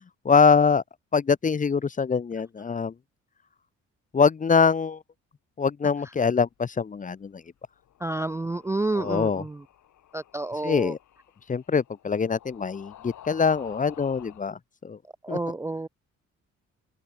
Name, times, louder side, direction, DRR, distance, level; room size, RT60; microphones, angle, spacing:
voice 1, 0.2-0.8 1.1-2.9 4.1-5.0 5.6-7.3 8.9-9.4 10.6-11.0 11.5-14.6 14.8-15.0 15.3-15.4, left 5 dB, 25° left, 0.7 m, -23 dB
sound 1, 7.8-14.5, left 12 dB, 70° left, 4.8 m, -50 dB
voice 2, 8.0-9.6 10.1-10.9 15.2-15.9, right 2 dB, 10° right, 0.4 m, -29 dB
open air
cardioid pair, 90°, 30 cm